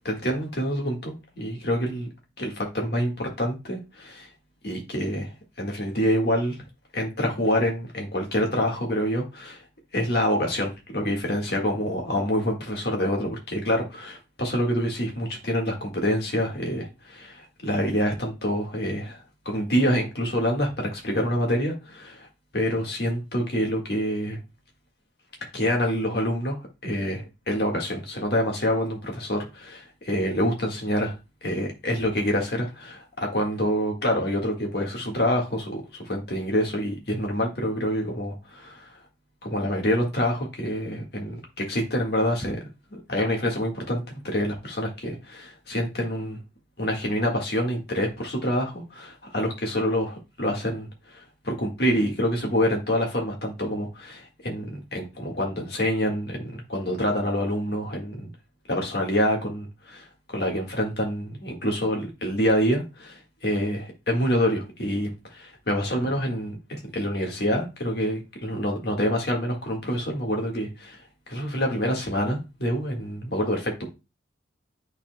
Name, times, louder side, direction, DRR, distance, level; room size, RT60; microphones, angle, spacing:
voice 1, 0.1-2.1 2.4-4.3 4.6-5.3 5.6-6.6 6.9-9.6 9.9-22.3 22.5-24.4 25.5-26.6 26.8-31.1 31.4-38.9 39.4-42.6 42.9-46.4 46.8-58.3 58.7-66.6 66.9-71.0 71.3-73.9, equal, 55° left, 1.7 m, -26 dB
10.0 x 4.2 x 2.2 m
head